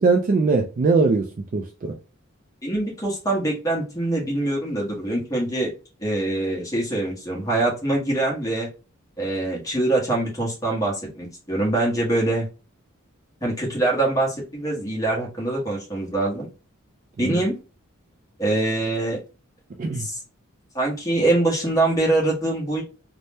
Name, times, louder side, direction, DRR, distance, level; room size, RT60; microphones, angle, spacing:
voice 1, 0.0-1.3 1.5-2.0 17.2-17.4 19.8-20.1, right 4 dB, 35° right, 0.3 m, -21 dB
voice 2, 2.6-5.7 6.0-8.7 9.2-12.5 13.4-16.5 17.2-17.6 18.4-19.2 20.0-20.2 20.7-22.8, right 2 dB, 15° left, 1.0 m, -24 dB
2.7 x 2.1 x 3.3 m
head